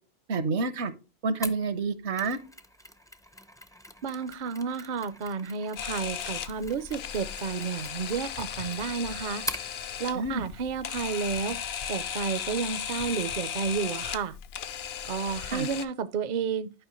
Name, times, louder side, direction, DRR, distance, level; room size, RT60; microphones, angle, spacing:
voice 1, 0.3-0.9 1.2-2.4 10.1-10.4 15.5-15.7, right 3 dB, 70° right, 1.1 m, -28 dB
Mechanisms, 1.4-9.7, left 1 dB, 5° left, 0.3 m, -43 dB
voice 2, 4.0-9.4 10.0-11.6 11.9-14.4 15.1-16.7, right 6 dB, 55° right, 0.6 m, -31 dB
Camera, 5.8-15.8, left 8 dB, 65° left, 0.8 m, -36 dB
11.0 x 5.1 x 3.0 m
omnidirectional pair, 1.2 m